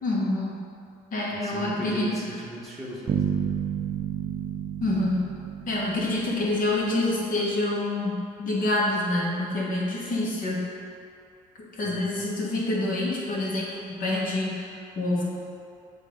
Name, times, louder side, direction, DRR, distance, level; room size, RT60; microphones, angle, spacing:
voice 1, 0.0-0.6 1.1-2.1 4.8-5.2 5.7-10.7 11.8-15.2, left 2 dB, 55° left, -4 dB, 1.5 m, -27 dB
voice 2, 1.3-3.5 10.0-10.2 11.8-12.3, equal, ahead, -7 dB, 1.1 m, -38 dB
sound 1, 3.1-6.8, right 8 dB, 40° right, 0.4 m, -31 dB
7.6 x 2.8 x 5.1 m, 2.5 s
cardioid pair, 110°, 17 cm